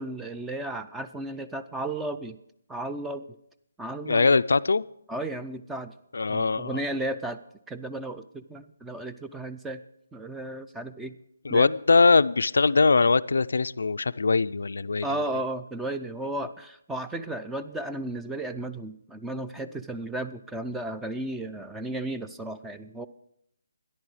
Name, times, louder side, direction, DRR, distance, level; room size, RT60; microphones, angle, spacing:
voice 1, 0.0-2.4 2.7-3.4 3.8-4.3 5.1-5.9 6.3-7.4 7.7-9.8 10.1-11.1 11.5-11.7 15.0-23.1, right 1 dB, 5° right, 8 dB, 0.4 m, -34 dB
voice 2, 4.1-4.8 6.1-6.8 11.4-15.1, left 4 dB, 70° left, 15 dB, 0.4 m, -21 dB
13.5 x 10.5 x 4.8 m, 0.75 s
figure-of-eight pair, 155°, 0 cm